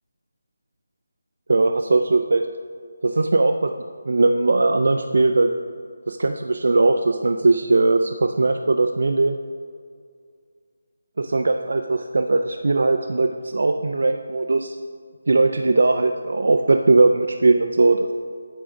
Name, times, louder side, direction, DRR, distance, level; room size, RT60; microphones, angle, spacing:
voice 1, 1.5-2.4 3.0-3.7 4.1-5.5 6.1-9.4 11.2-14.8 15.3-18.1, right 3 dB, 65° right, 6 dB, 0.3 m, -19 dB
8.6 x 5.0 x 3.5 m, 2.1 s
figure-of-eight pair, 175°, 0 cm